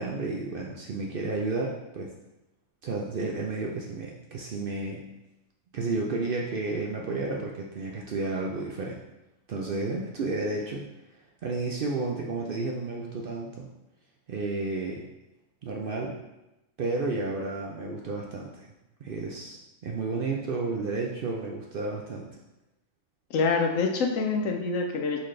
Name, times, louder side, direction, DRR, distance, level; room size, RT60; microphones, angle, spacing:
voice 1, 0.0-2.1 2.8-5.0 5.7-9.0 9.5-10.8 11.4-13.7 14.3-15.0 15.6-16.1 16.8-18.7 19.0-22.3, right 3 dB, 60° right, -1 dB, 0.6 m, -31 dB
voice 2, 23.3-25.2, left 4 dB, 80° left, 2 dB, 1.0 m, -26 dB
4.1 x 3.9 x 3.2 m, 0.96 s
omnidirectional pair, 1.4 m